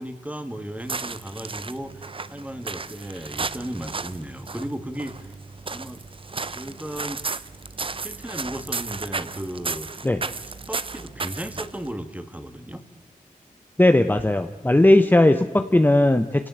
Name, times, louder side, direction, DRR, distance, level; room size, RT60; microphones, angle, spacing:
voice 1, 0.0-5.3 5.7-6.0 6.5-7.2 8.0-9.9 10.7-12.8, right 1 dB, 10° right, 9 dB, 2.1 m, -35 dB
sound 1, 0.8-11.9, right 4 dB, 40° right, 0.8 m, -34 dB
voice 2, 13.8-16.5, left 1 dB, 15° left, 7 dB, 1.0 m, -17 dB
27.5 x 17.5 x 8.0 m, 1.2 s
wide cardioid pair, 75°, 14 cm